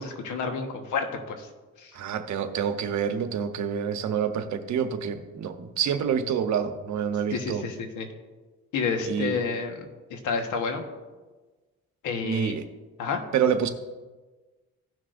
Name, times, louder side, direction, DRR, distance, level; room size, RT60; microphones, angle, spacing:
voice 1, 0.0-1.5 1.8-2.0 7.3-8.1 8.7-9.8 10.1-10.8 12.0-12.5 13.0-13.2, left 5 dB, 80° left, 4 dB, 1.3 m, -29 dB
voice 2, 1.9-7.7 9.1-9.4 12.2-12.6 13.3-13.7, right 8 dB, 70° right, 8 dB, 0.9 m, -27 dB
16.0 x 6.1 x 2.5 m, 1.3 s
cardioid pair, 90°, 30 cm